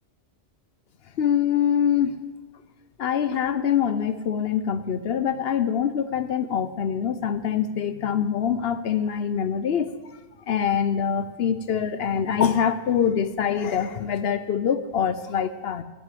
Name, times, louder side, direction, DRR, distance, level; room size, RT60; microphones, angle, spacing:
voice 1, 1.2-2.2 3.0-10.2 10.5-15.8, left 8 dB, 60° left, 13 dB, 0.8 m, -24 dB
10.5 x 8.2 x 7.8 m, 1.2 s
omnidirectional pair, 1.2 m